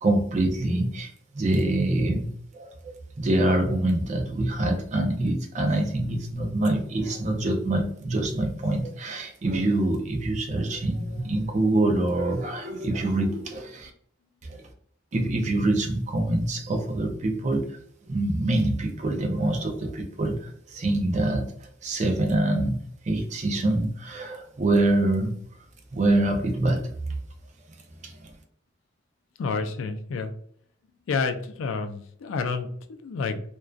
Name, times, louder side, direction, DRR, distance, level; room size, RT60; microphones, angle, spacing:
voice 1, 0.0-2.7 3.2-13.9 14.4-14.6 15.1-17.8 18.1-25.3 25.9-26.8 28.0-28.3, right 1 dB, 35° right, 4 dB, 0.4 m, -25 dB
voice 2, 29.4-30.3 31.1-33.4, left 4 dB, 75° left, 7 dB, 0.3 m, -29 dB
2.5 x 2.2 x 2.2 m, 0.63 s
head